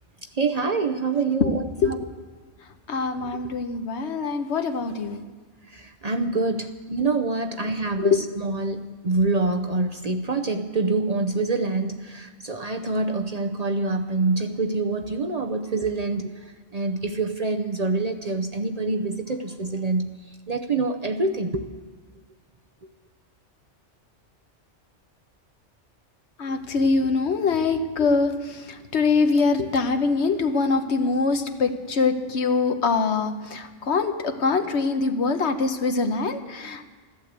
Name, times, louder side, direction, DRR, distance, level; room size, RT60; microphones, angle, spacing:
voice 1, 0.3-2.0 5.7-16.3 16.7-21.7, right 3 dB, 40° right, 5 dB, 0.7 m, -26 dB
voice 2, 2.9-5.3 8.0-8.2 26.4-36.9, left 4 dB, 70° left, 7 dB, 1.2 m, -23 dB
14.0 x 11.5 x 8.0 m, 1.4 s
omnidirectional pair, 1.2 m